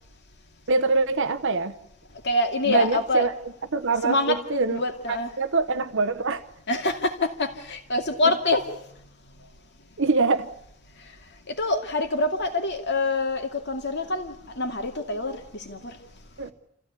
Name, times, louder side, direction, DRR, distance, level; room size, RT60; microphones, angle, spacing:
voice 1, 0.7-1.8 2.7-3.3 3.7-4.8 5.1-6.4 8.2-8.3 10.0-10.5 16.4-16.5, right 3 dB, 55° right, 1.0 m, -24 dB
voice 2, 2.2-3.2 4.0-4.4 4.7-5.3 6.7-8.7 11.6-15.4 15.7-15.8, left 2 dB, 50° left, 2.5 m, -25 dB
28.0 x 15.5 x 8.3 m
head